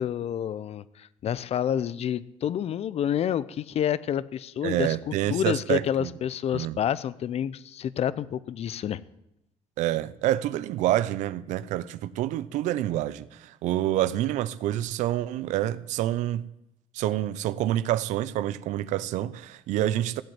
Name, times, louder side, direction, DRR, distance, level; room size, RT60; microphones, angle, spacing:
voice 1, 0.0-9.0, left 9 dB, 60° left, 0.7 m, -29 dB
voice 2, 4.6-6.1 6.5-6.8 9.8-16.4 16.9-20.2, right 13 dB, 85° right, 0.7 m, -27 dB
15.5 x 7.9 x 9.4 m
cardioid pair, 90°, 12 cm